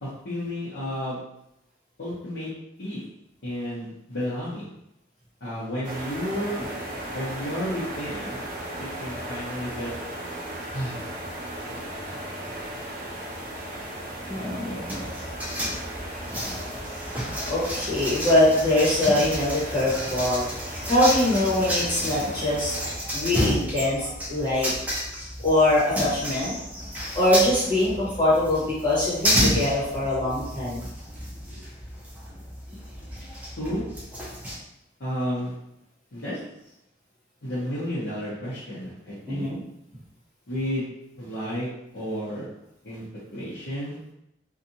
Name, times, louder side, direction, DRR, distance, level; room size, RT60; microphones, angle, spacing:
voice 1, 0.0-1.2 2.0-2.5 2.8-3.0 3.4-4.7 5.4-6.6 7.1-8.4 8.8-9.9 10.7-11.0 14.4-15.1 33.6-33.8 35.0-35.5 36.1-36.4 37.4-39.5 40.5-40.9 41.2-41.7 41.9-42.5 42.8-43.0 43.3-44.0, equal, 75° left, -11 dB, 0.8 m, -32 dB
sound 1, 5.8-23.0, right 1 dB, 50° right, 0.6 m, -36 dB
voice 2, 14.2-14.8 17.4-22.7 23.1-24.7 25.4-26.5 27.1-30.8 39.3-39.6, left 1 dB, 25° left, -10 dB, 1.2 m, -23 dB
sound 2, 14.9-34.6, equal, 10° right, 0.5 m, -31 dB
2.6 x 2.4 x 2.7 m, 0.82 s
head